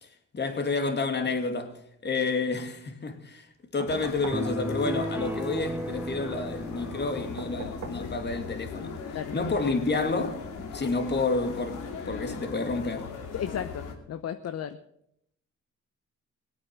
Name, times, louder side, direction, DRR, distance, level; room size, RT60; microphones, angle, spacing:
voice 1, 0.0-9.0 9.3-13.1, left 3 dB, 35° left, 2.3 m, -30 dB
sound 1, 3.8-4.5 7.4-8.1 9.7-9.8, right 6 dB, 70° right, 2.0 m, -41 dB
sound 2, 3.9-13.9, left 5 dB, 80° left, 2.6 m, -39 dB
sound 3, 4.3-7.9, right 1 dB, 5° right, 0.7 m, -35 dB
voice 2, 13.3-14.8, left 9 dB, 55° left, 0.9 m, -34 dB
19.0 x 8.6 x 6.0 m
cardioid pair, 90°, 30 cm